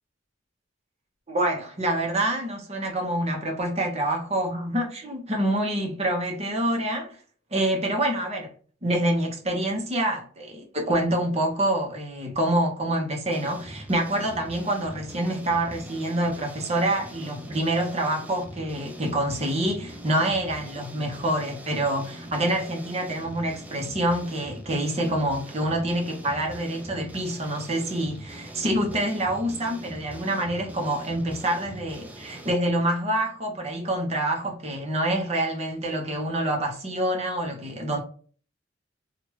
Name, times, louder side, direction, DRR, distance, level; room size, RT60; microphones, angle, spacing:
voice 1, 1.3-7.2 7.5-8.5 8.8-38.0, right 1 dB, 35° right, 0.8 m, -26 dB
sound 1, 13.3-32.5, right 1 dB, 10° right, 0.4 m, -42 dB
3.2 x 2.4 x 3.0 m
head